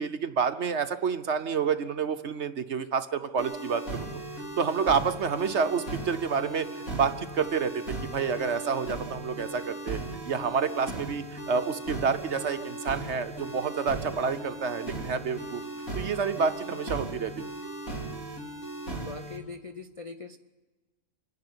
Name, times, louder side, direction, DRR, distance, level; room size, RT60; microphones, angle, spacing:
voice 1, 0.0-3.8 4.6-10.0 10.3-15.6 15.9-17.4, right 6 dB, 55° right, 9 dB, 1.0 m, -29 dB
sound 1, 3.4-19.4, right 2 dB, 60° left, 3.5 m, -37 dB
voice 2, 19.0-20.4, left 3 dB, 40° left, 7 dB, 0.4 m, -41 dB
26.0 x 11.0 x 9.8 m, 1.2 s
omnidirectional pair, 1.6 m